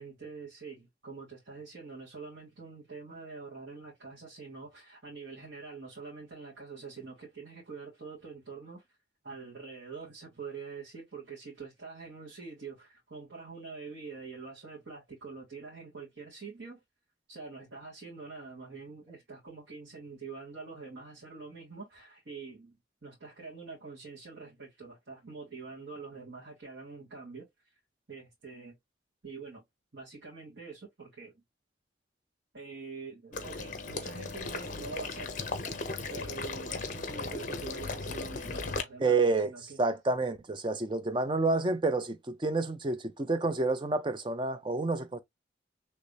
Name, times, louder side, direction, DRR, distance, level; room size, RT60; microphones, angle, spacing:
voice 1, 0.0-8.8 9.2-16.8 17.3-27.5 28.1-28.8 29.2-29.6 29.9-31.3 32.5-35.3 36.1-39.2 39.4-39.8, right 4 dB, 70° right, 1.6 m, -45 dB
Water / Liquid, 33.3-38.8, left 3 dB, 40° left, 0.6 m, -37 dB
voice 2, 39.0-39.5 39.8-45.2, right 3 dB, 25° right, 0.4 m, -29 dB
3.1 x 2.6 x 3.2 m
head